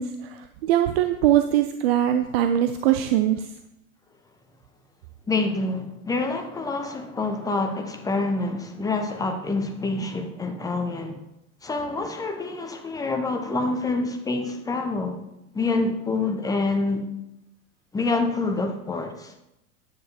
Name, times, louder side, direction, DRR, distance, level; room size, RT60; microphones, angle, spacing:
voice 1, 0.0-3.5, right 11 dB, 45° right, 0.6 m, -22 dB
voice 2, 5.3-11.2 11.6-15.2 15.5-17.1 17.9-19.3, left 3 dB, 10° left, 0.8 m, -27 dB
9.5 x 9.1 x 2.8 m
figure-of-eight pair, 90°, 41 cm